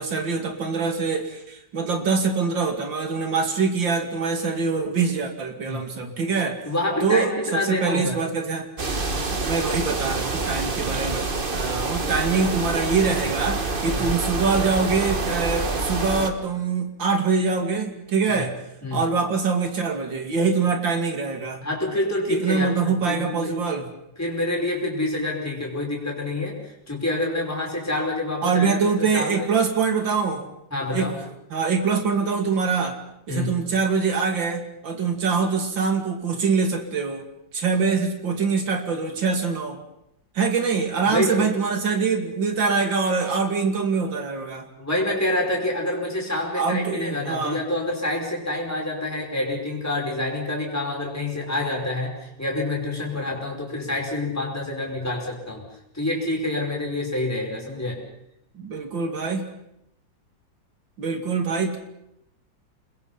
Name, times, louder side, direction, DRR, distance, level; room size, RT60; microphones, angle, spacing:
voice 1, 0.0-6.6 7.0-8.7 9.4-11.2 11.5-18.5 18.9-21.6 22.3-23.9 28.4-30.5 30.9-31.1 31.5-32.9 33.3-37.2 37.5-39.8 40.3-44.6 46.5-47.6 58.5-59.5 61.0-61.8, right 5 dB, 90° right, 5 dB, 3.3 m, -24 dB
voice 2, 6.7-8.2 13.9-14.1 18.3-18.5 18.8-19.0 21.6-23.6 24.2-29.5 30.7-31.2 33.3-33.6 41.1-41.5 44.8-55.7 55.9-58.0, left 1 dB, 10° left, -1 dB, 5.2 m, -27 dB
sound 1, 8.8-16.3, right 3 dB, 30° right, 1.5 m, -27 dB
29.0 x 21.5 x 5.7 m, 0.78 s
omnidirectional pair, 2.0 m